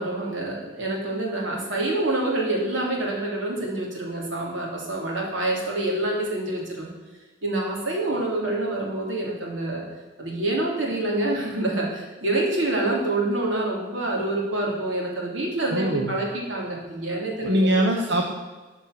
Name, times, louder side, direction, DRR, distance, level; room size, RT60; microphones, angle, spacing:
voice 1, 0.0-6.9 7.4-9.8 10.2-17.8, right 2 dB, 90° right, -2 dB, 3.0 m, -27 dB
voice 2, 15.7-16.2 17.4-18.3, right 1 dB, 65° right, 2 dB, 0.9 m, -22 dB
12.5 x 5.3 x 6.5 m, 1.3 s
head